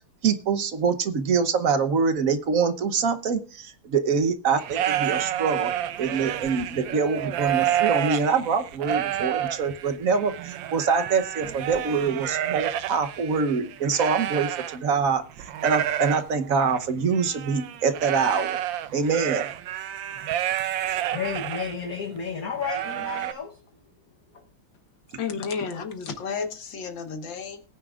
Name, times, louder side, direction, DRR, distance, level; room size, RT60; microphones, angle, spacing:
voice 1, 0.2-5.7 6.0-18.6 18.9-19.5 20.9-21.0, right 5 dB, 50° right, 1.1 m, -25 dB
sound 1, 4.5-15.1 15.4-21.7 22.2-22.3 22.6-23.3, right 11 dB, 70° right, 1.4 m, -29 dB
voice 2, 20.8-23.6, left 6 dB, 50° left, 1.4 m, -32 dB
voice 3, 25.2-27.6, left 5 dB, 65° left, 2.0 m, -32 dB
19.5 x 9.5 x 2.4 m
omnidirectional pair, 2.2 m